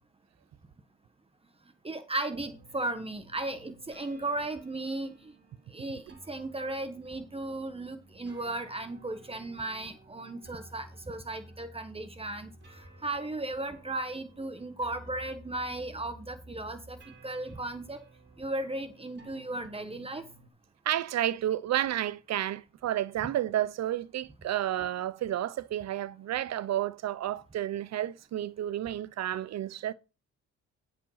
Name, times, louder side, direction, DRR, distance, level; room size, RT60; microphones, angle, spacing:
voice 1, 1.8-5.3 5.7-12.5 13.0-18.0 18.4-20.2, right 2 dB, 20° right, 1.3 m, -36 dB
sound 1, 2.3-20.5, right 1 dB, 35° right, 3.4 m, -54 dB
voice 2, 20.9-29.9, right 12 dB, 60° right, 0.7 m, -31 dB
10.0 x 5.1 x 5.6 m
cardioid pair, 90°, 30 cm